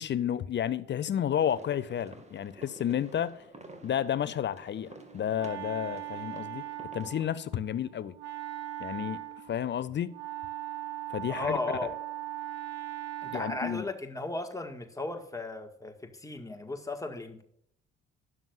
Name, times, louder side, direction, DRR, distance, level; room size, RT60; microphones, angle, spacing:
voice 1, 0.0-3.4 3.8-6.6 6.9-8.1 8.8-10.1 11.1-11.6 13.3-13.8, left 9 dB, 35° left, 0.6 m, -31 dB
sound 1, 1.4-7.2, right 2 dB, 20° right, 2.2 m, -51 dB
Wind instrument woodwind instrument, 4.8-13.9, right 13 dB, 60° right, 1.6 m, -40 dB
voice 2, 11.4-11.9 13.2-17.4, left 3 dB, 10° left, 1.9 m, -36 dB
12.5 x 11.0 x 2.6 m
figure-of-eight pair, 50°, 31 cm